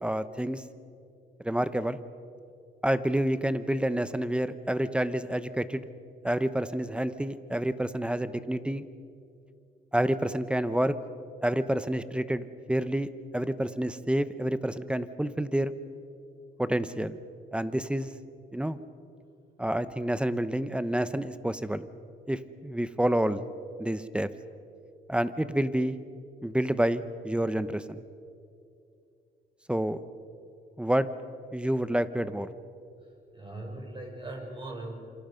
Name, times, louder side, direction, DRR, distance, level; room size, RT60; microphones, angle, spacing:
voice 1, 0.0-0.6 1.4-2.0 2.8-5.8 6.2-8.8 9.9-11.0 11.4-13.1 13.3-15.7 16.6-17.2 17.5-18.1 18.5-18.8 19.6-21.9 22.3-23.4 23.8-24.3 25.1-26.0 26.4-28.0 29.7-30.0 30.8-31.1 31.5-32.5, right 1 dB, 5° right, 13 dB, 1.0 m, -28 dB
voice 2, 33.3-35.0, right 2 dB, 25° right, 0 dB, 6.4 m, -39 dB
28.0 x 25.5 x 5.3 m, 2.5 s
cardioid pair, 90°, 20 cm